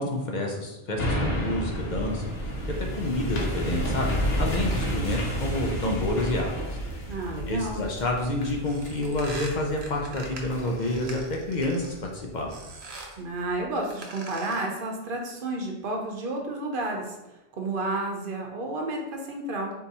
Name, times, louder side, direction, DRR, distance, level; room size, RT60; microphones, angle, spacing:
voice 1, 0.0-2.3 2.9-6.8 7.5-11.2 11.5-12.5, left 2 dB, 50° left, 1 dB, 0.7 m, -29 dB
sound 1, 1.0-12.4 12.9-13.0, equal, 75° left, 1.1 m, -31 dB
voice 2, 7.1-7.8 13.2-19.7, right 2 dB, 60° right, 1 dB, 0.9 m, -31 dB
sound 2, 8.6-12.1 12.5-13.2 13.8-14.8, right 3 dB, 85° right, 1.1 m, -43 dB
3.7 x 2.8 x 4.0 m, 0.97 s
omnidirectional pair, 1.0 m